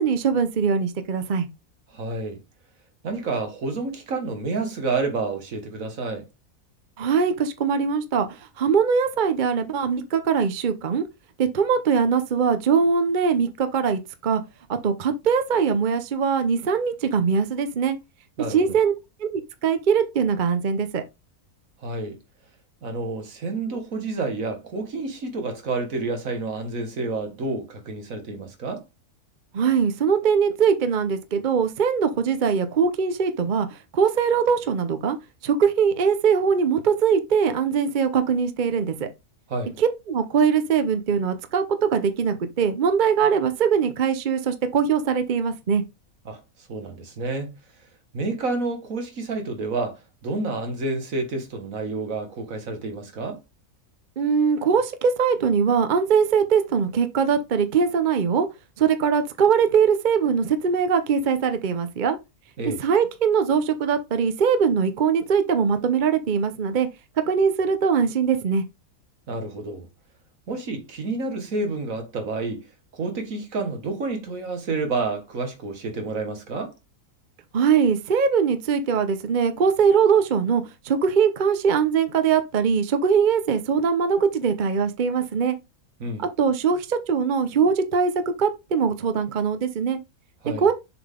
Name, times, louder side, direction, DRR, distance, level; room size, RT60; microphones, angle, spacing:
voice 1, 0.0-1.5 7.0-8.3 8.6-11.0 11.4-14.4 14.8-18.0 18.5-18.9 19.2-21.0 29.5-35.2 35.4-39.1 39.8-45.8 54.2-58.5 58.8-62.2 62.7-66.9 67.3-68.6 77.5-85.6 86.2-88.1 88.4-90.0 90.6-90.7, right 6 dB, 45° right, 0.7 m, -21 dB
voice 2, 1.9-2.4 3.0-6.3 18.4-18.7 21.8-22.2 22.8-28.8 39.5-39.8 46.3-46.4 46.7-47.5 48.1-53.4 62.6-62.8 69.3-69.9 70.5-72.6 72.9-76.7 86.0-86.2 90.4-90.7, right 3 dB, 65° right, 1.8 m, -29 dB
6.9 x 3.9 x 3.7 m
omnidirectional pair, 1.6 m